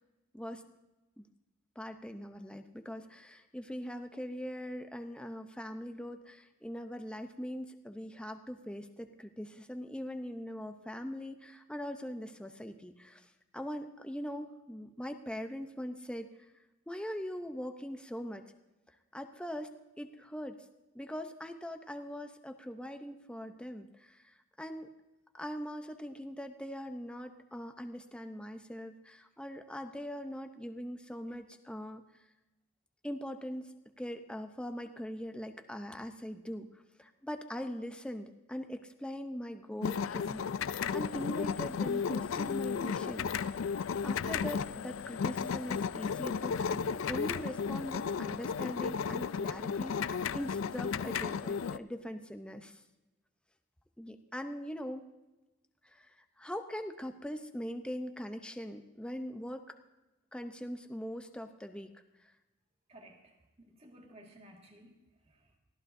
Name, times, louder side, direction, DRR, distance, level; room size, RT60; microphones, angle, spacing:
voice 1, 1.8-13.3 13.5-16.3 16.9-18.5 19.1-20.7 20.9-24.9 25.3-32.0 33.0-36.7 37.0-43.3 44.0-52.8 54.0-55.1 55.8-59.7 60.3-61.9 62.2-62.3, equal, 5° left, 6 dB, 0.7 m, -41 dB
sound 1, 39.8-51.8, left 6 dB, 75° left, 0.4 m, -34 dB
voice 2, 62.9-64.9 65.3-65.4, right 1 dB, 30° right, 1 dB, 1.9 m, -56 dB
23.5 x 15.5 x 2.7 m, 1.0 s
head